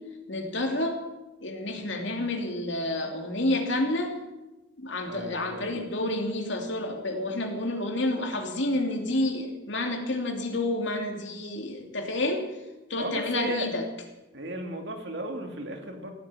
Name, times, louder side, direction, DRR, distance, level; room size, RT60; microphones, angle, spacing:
voice 1, 0.3-1.0 1.4-4.1 4.8-12.4 12.9-13.8, left 1 dB, 75° left, 3 dB, 2.7 m, -29 dB
voice 2, 5.1-5.8 13.0-13.7 14.3-16.1, right 1 dB, 65° right, 4 dB, 2.6 m, -35 dB
16.0 x 9.9 x 8.7 m, 1.0 s
head